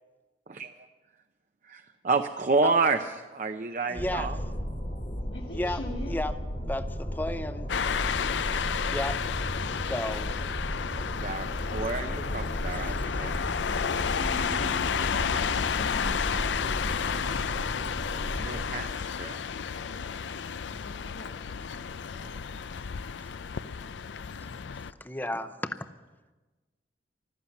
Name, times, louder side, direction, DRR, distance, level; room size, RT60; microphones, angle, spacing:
voice 1, 1.6-4.4 11.0-13.3 18.4-19.4 22.2-22.4, right 4 dB, 45° right, 7 dB, 0.6 m, -30 dB
sound 1, 3.9-18.7, equal, 40° left, 1.6 m, -35 dB
voice 2, 3.9-4.3 5.5-5.8 6.1-6.3 6.6-7.7 8.9-9.2 9.7-10.3 12.7-13.1 23.2-23.3 25.0-25.9, left 1 dB, 10° left, 10 dB, 0.6 m, -33 dB
voice 3, 5.3-6.2 9.8-10.0 14.1-16.1 19.9-21.3, left 1 dB, 70° left, -4 dB, 2.0 m, -44 dB
sound 2, 7.7-24.9, left 7 dB, 90° left, 0.5 m, -32 dB
15.5 x 13.0 x 7.1 m, 1.2 s
head